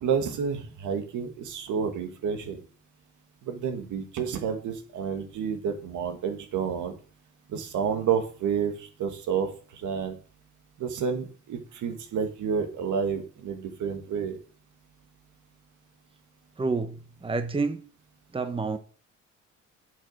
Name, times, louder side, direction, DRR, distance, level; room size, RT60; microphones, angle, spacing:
voice 1, 0.0-2.6 3.4-6.9 7.5-10.2 10.8-14.4, right 7 dB, 80° right, 2.0 m, -30 dB
voice 2, 16.6-17.8 18.3-18.8, right 4 dB, 15° right, 1.0 m, -29 dB
8.6 x 6.6 x 6.5 m
cardioid pair, 90°, 30 cm